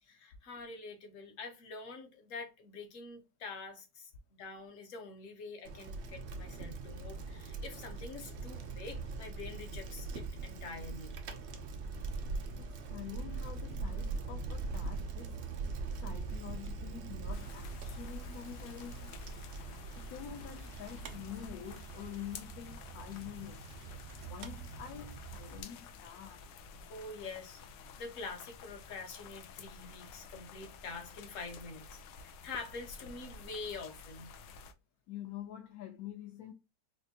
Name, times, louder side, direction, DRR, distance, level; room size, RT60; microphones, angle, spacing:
voice 1, 0.0-11.1 26.9-27.6 28.0-34.3, left 3 dB, 55° left, 1.1 m, -46 dB
Bicycle, 5.6-25.6, right 4 dB, 85° right, 0.5 m, -42 dB
voice 2, 12.6-15.5 16.0-19.2 19.9-23.6 24.2-26.4 35.1-36.5, left 10 dB, 70° left, 0.9 m, -47 dB
sound 1, 17.3-34.7, left 6 dB, 90° left, 1.2 m, -52 dB
4.4 x 2.4 x 2.7 m
omnidirectional pair, 1.9 m